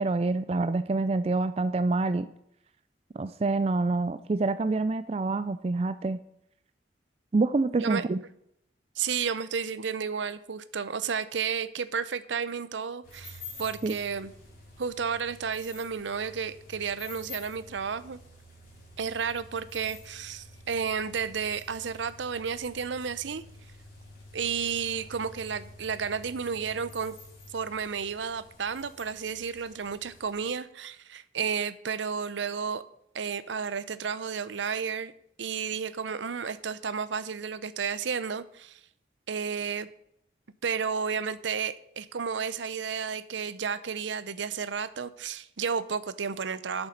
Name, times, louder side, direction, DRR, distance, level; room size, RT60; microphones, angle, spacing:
voice 1, 0.0-2.3 3.2-6.2 7.3-8.2 13.8-13.9, right 3 dB, 35° right, 12 dB, 0.3 m, -26 dB
voice 2, 7.7-8.1 9.0-14.3 14.8-18.2 19.0-23.4 24.3-27.2 27.5-32.8 33.1-35.1 35.4-38.8 39.3-39.9 40.6-46.9, right 6 dB, 80° right, 15 dB, 0.6 m, -32 dB
sound 1, 13.0-30.4, left 2 dB, 50° left, 4.5 m, -49 dB
8.9 x 7.2 x 6.6 m, 0.74 s
head